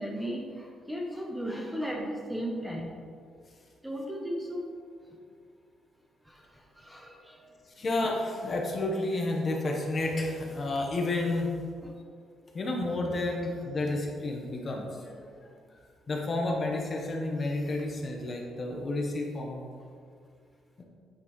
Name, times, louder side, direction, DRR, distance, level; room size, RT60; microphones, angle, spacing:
voice 1, 0.0-2.9 3.8-4.6 6.3-7.5 11.8-11.9, equal, 5° right, 0 dB, 0.8 m, -36 dB
voice 2, 7.8-11.5 12.5-15.3 16.1-19.7 20.8-20.9, left 2 dB, 35° left, 0 dB, 1.1 m, -31 dB
8.7 x 5.4 x 3.2 m, 2.1 s
cardioid pair, 120°, 0 cm